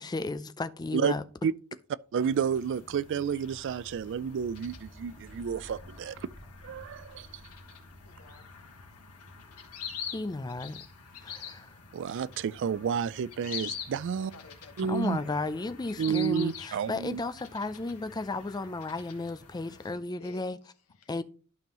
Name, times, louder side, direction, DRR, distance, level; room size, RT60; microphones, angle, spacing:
voice 1, 0.0-1.2 10.1-10.8 11.2-11.8 14.9-20.6 21.1-21.2, left 2 dB, 20° left, 0.4 m, -34 dB
sound 1, 2.0-9.6 12.9-13.0 14.1-14.2, equal, 35° right, 3.5 m, -56 dB
sound 2, 2.1-19.9, left 7 dB, 85° left, 1.7 m, -46 dB
voice 2, 2.1-6.2 6.6-7.3 11.9-14.3 14.8-15.2 16.0-17.2, right 7 dB, 55° right, 0.3 m, -30 dB
voice 3, 8.0-8.5 14.1-15.5 18.4-18.6 19.8-21.2, left 3 dB, 70° left, 0.9 m, -54 dB
11.5 x 5.4 x 3.0 m
head